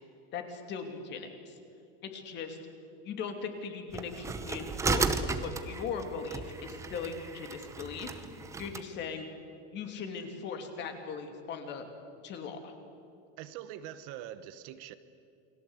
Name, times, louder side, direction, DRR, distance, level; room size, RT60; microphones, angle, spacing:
voice 1, 0.3-1.6 2.0-2.6 3.0-8.1 8.6-9.3 9.7-11.9 12.2-12.7, left 5 dB, 30° left, 5 dB, 2.8 m, -39 dB
sound 1, 3.9-8.8, right 4 dB, 10° right, 0.8 m, -34 dB
voice 2, 13.4-14.9, right 11 dB, 40° right, 13 dB, 1.1 m, -43 dB
29.0 x 21.0 x 8.2 m, 2.6 s
supercardioid pair, 170°, 35 cm